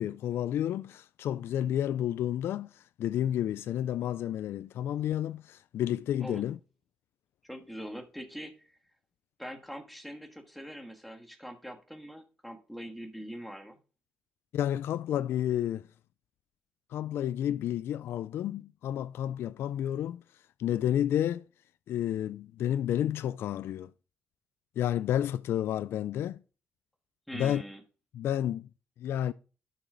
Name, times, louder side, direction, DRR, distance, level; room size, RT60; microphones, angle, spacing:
voice 1, 0.0-6.6 14.5-15.9 16.9-20.2 20.6-21.4 21.9-23.9 24.8-26.4 27.3-27.6 28.1-28.7 29.0-29.3, left 11 dB, 75° left, 0.3 m, -31 dB
voice 2, 7.4-8.8 9.4-13.8 27.3-27.8, equal, ahead, 1.6 m, -43 dB
11.0 x 6.1 x 3.9 m
cardioid pair, 115°, 4 cm